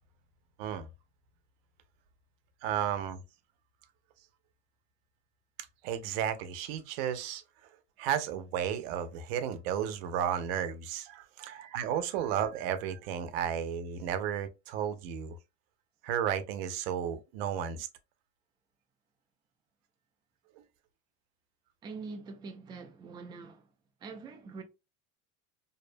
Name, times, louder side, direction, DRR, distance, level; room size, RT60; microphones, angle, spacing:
voice 1, 2.6-3.2 5.8-7.4 8.0-15.4 16.0-17.9 20.6-20.7, right 9 dB, 85° right, 0.6 m, -33 dB
voice 2, 21.8-23.7 24.0-24.6, right 4 dB, 15° right, 0.3 m, -44 dB
2.6 x 2.1 x 2.5 m
cardioid pair, 150°, 30 cm